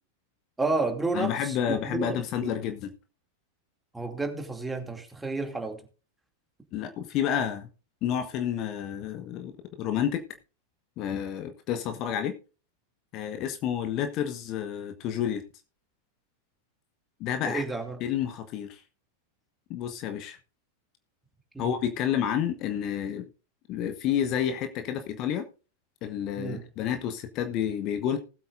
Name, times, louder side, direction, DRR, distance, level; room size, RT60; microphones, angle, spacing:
voice 1, 0.6-2.5 3.9-5.8 17.4-18.0 21.5-21.8 26.4-26.6, right 3 dB, 10° right, 2.7 m, -31 dB
voice 2, 1.1-2.9 6.7-7.7 8.0-9.5 9.8-10.2 11.0-12.3 13.1-15.4 17.2-17.6 18.0-18.8 19.7-20.4 21.6-23.3 23.7-25.5 26.0-28.2, left 9 dB, 40° left, 1.3 m, -30 dB
19.5 x 8.4 x 2.6 m
figure-of-eight pair, 90°, 0 cm